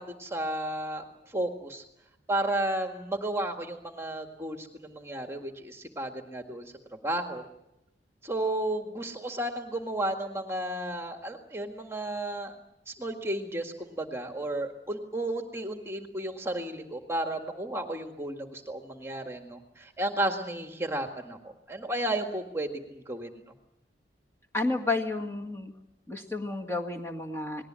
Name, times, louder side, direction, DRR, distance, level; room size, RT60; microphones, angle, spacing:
voice 1, 0.0-1.8 2.3-7.4 8.2-12.6 12.9-23.4, right 1 dB, 15° right, 4 dB, 1.8 m, -33 dB
voice 2, 24.5-25.7 26.1-27.6, left 3 dB, 15° left, 0 dB, 1.9 m, -31 dB
28.5 x 20.0 x 7.6 m, 0.84 s
head